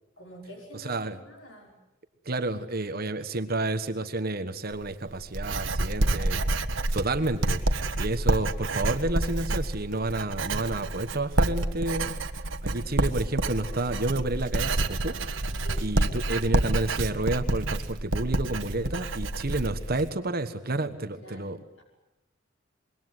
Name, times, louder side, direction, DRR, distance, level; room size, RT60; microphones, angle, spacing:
voice 1, 0.2-1.7 6.2-6.6 15.6-15.9 21.2-21.5 21.8-21.9, equal, 75° left, 1 dB, 5.6 m, -47 dB
voice 2, 0.7-1.2 2.2-6.4 6.9-12.2 12.6-15.5 15.8-21.6, right 2 dB, 50° right, 9 dB, 1.3 m, -30 dB
Writing, 4.7-20.1, right 2 dB, 75° right, 1.5 m, -28 dB
26.0 x 22.5 x 8.0 m, 0.96 s
head